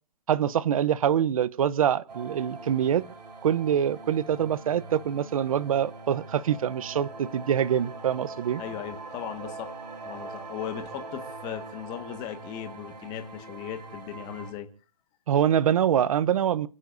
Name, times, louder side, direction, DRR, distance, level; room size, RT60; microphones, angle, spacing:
voice 1, 0.3-3.1 3.4-8.6 15.3-16.7, right 9 dB, 55° right, 0.9 m, -25 dB
sound 1, 2.1-14.5, right 3 dB, 80° right, 6.4 m, -42 dB
voice 2, 8.6-9.7 10.0-14.7, left 11 dB, 20° left, 1.6 m, -37 dB
29.0 x 16.5 x 2.6 m
hypercardioid pair, 160°, 21 cm